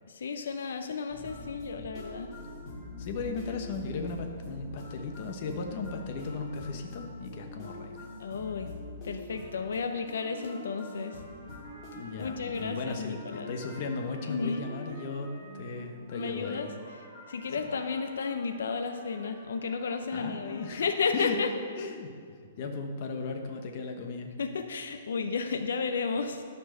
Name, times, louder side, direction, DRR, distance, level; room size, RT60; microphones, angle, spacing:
voice 1, 0.1-2.3 8.2-8.7 9.0-11.2 12.2-13.5 14.3-14.7 16.1-16.7 17.3-21.5 24.4-26.4, left 5 dB, 85° left, 7 dB, 0.6 m, -32 dB
sound 1, 1.1-18.4, left 1 dB, 20° left, 2.0 m, -45 dB
voice 2, 3.0-8.1 11.9-13.1 13.5-15.3 15.5-16.7 17.6-17.7 20.1-20.8 21.1-21.4 21.8-22.1 22.6-24.3, left 4 dB, 40° left, 3 dB, 1.0 m, -36 dB
Trumpet, 9.3-15.8 16.2-21.6, right 1 dB, 35° right, 1.8 m, -53 dB
12.0 x 4.5 x 6.5 m, 2.1 s
hypercardioid pair, 165°, 0 cm